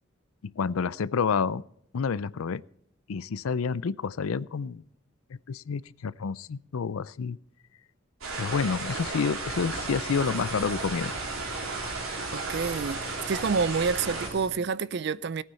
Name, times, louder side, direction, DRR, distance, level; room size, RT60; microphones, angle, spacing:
voice 1, 0.4-1.6 1.9-2.6 3.1-4.8 5.5-7.4 8.4-11.1, left 5 dB, 80° left, 0.5 m, -29 dB
sound 1, 8.2-14.3, right 3 dB, 85° right, 3.7 m, -34 dB
sound 2, 9.5-14.5, right 2 dB, 15° right, 5.6 m, -42 dB
voice 2, 12.3-15.4, right 5 dB, 50° right, 0.4 m, -28 dB
18.0 x 9.2 x 4.3 m
head